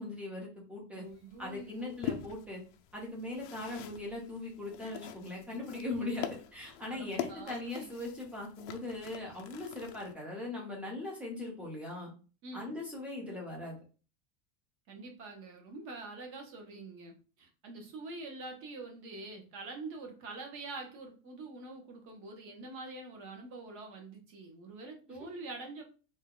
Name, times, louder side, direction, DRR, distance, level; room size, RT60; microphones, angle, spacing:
voice 1, 0.0-1.0 1.4-2.6 2.9-12.1 12.5-13.8 25.1-25.3, left 2 dB, 5° right, -2 dB, 0.5 m, -40 dB
voice 2, 0.9-2.1 6.9-7.9 12.4-12.7 14.9-25.8, right 3 dB, 35° right, 3 dB, 0.8 m, -45 dB
sound 1, 1.0-10.1, left 10 dB, 70° left, 0.5 m, -44 dB
2.7 x 2.2 x 3.6 m, 0.36 s
supercardioid pair, 170°, 37 cm